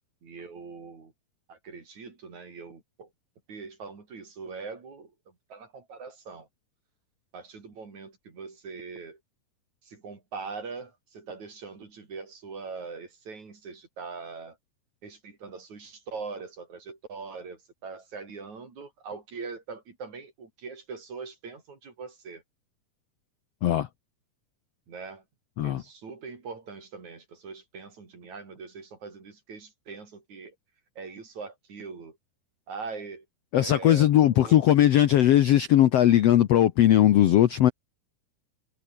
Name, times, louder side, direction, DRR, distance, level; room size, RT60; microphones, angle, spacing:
voice 1, 0.2-1.1 1.5-3.1 3.5-5.1 5.5-6.5 7.3-9.2 9.8-14.6 15.0-22.4 24.9-25.2 25.6-30.6 31.0-32.2 32.7-33.3 33.6-34.6, right 4 dB, 50° right, 5.7 m, -42 dB
voice 2, 33.5-37.7, left 12 dB, 80° left, 1.4 m, -19 dB
omnidirectional pair, 4.2 m